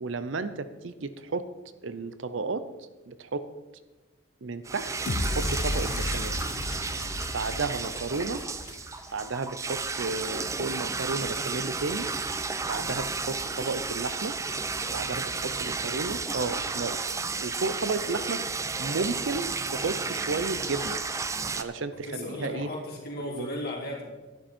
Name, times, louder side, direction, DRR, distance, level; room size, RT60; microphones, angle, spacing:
voice 1, 0.0-1.5 1.8-2.7 3.1-3.5 4.4-5.0 5.2-6.4 7.3-8.4 9.1-12.1 12.7-14.4 14.9-17.0 17.4-18.4 18.8-21.0 21.6-22.7 23.3-23.5, right 3 dB, 70° right, 12 dB, 0.7 m, -32 dB
sound 1, 4.6-21.6, right 4 dB, 15° right, 0.4 m, -32 dB
sound 2, 5.1-9.3, left 2 dB, 85° left, 1.0 m, -33 dB
voice 2, 22.0-24.1, left 1 dB, 50° left, -2 dB, 3.2 m, -35 dB
11.5 x 10.5 x 4.4 m, 1.2 s
head